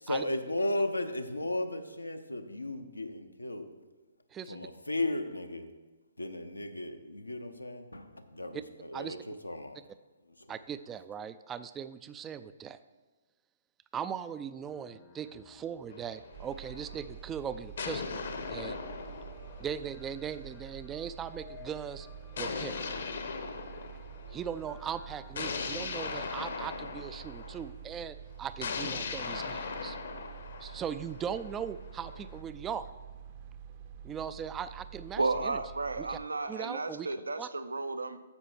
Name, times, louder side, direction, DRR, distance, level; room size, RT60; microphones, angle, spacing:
voice 1, 0.0-3.7 4.5-5.7 6.2-9.8 10.4-10.5, left 2 dB, 85° left, 7 dB, 0.8 m, -35 dB
voice 2, 4.3-4.7 8.5-8.6 8.9-9.2 10.5-12.8 13.9-18.2 18.5-18.8 19.6-22.1 22.4-22.8 24.3-30.0 30.6-32.9 34.0-35.6 36.0-36.2 36.5-37.1 37.4-37.5, right 8 dB, 15° right, 13 dB, 0.3 m, -39 dB
sound 1, 14.6-25.3, left 6 dB, 20° left, 0.7 m, -56 dB
sound 2, 15.9-17.0 17.8-20.4 22.4-24.5 25.4-27.7 28.6-32.4, left 5 dB, 55° left, 0.9 m, -39 dB
sound 3, 16.3-36.3, right 8 dB, 35° right, 0.7 m, -48 dB
voice 3, 35.2-38.2, right 3 dB, 75° right, 12 dB, 0.6 m, -33 dB
9.8 x 6.8 x 4.4 m, 1.2 s
figure-of-eight pair, 130°, 0 cm